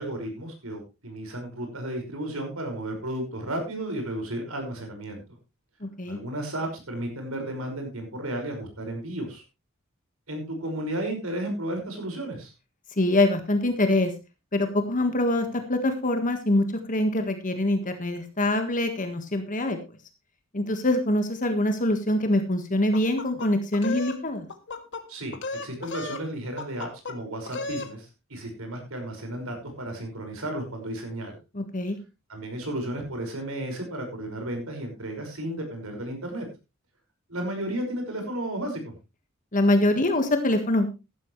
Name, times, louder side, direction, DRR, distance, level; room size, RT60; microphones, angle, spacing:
voice 1, 0.0-5.2 6.0-9.4 10.3-12.5 25.1-31.4 32.3-36.4 37.3-38.9, right 1 dB, 85° right, 4 dB, 5.6 m, -33 dB
voice 2, 5.8-6.2 13.0-14.1 14.5-19.8 20.5-24.5 31.5-32.0 39.5-40.9, left 1 dB, 40° left, 7 dB, 1.6 m, -24 dB
sound 1, 22.9-24.2 24.5-25.0 25.3-26.3 26.6-27.2 27.5-27.9, left 3 dB, 60° left, 1.8 m, -34 dB
14.5 x 12.0 x 3.2 m, 0.27 s
head